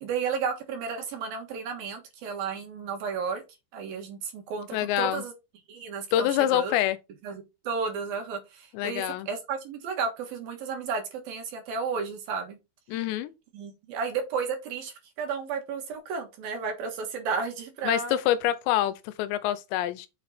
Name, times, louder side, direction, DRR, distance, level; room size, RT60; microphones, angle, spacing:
voice 1, 0.0-3.4 3.7-5.3 5.7-6.7 7.2-12.6 13.5-18.2, right 5 dB, 65° right, 3.0 m, -33 dB
voice 2, 4.7-5.2 6.1-7.0 8.7-9.3 12.9-13.3 17.9-20.1, left 12 dB, 80° left, 2.8 m, -26 dB
7.4 x 6.2 x 4.3 m
omnidirectional pair, 5.2 m